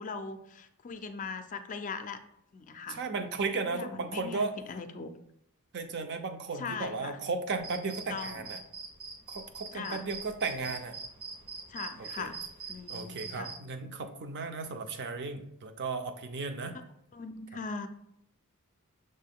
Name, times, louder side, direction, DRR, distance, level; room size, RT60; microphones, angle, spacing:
voice 1, 0.0-2.2 2.5-3.0 3.7-5.1 6.6-7.2 8.1-8.5 9.7-10.0 11.7-12.4 12.7-13.5 17.1-17.9, left 4 dB, 35° left, 9 dB, 0.4 m, -40 dB
voice 2, 2.9-4.5 5.7-8.6 9.3-11.0 12.0-12.3 12.9-16.8, right 4 dB, 50° right, 7 dB, 0.5 m, -35 dB
sound 1, 7.5-13.6, right 4 dB, 85° right, 1.5 m, -44 dB
6.4 x 2.2 x 3.6 m, 0.76 s
head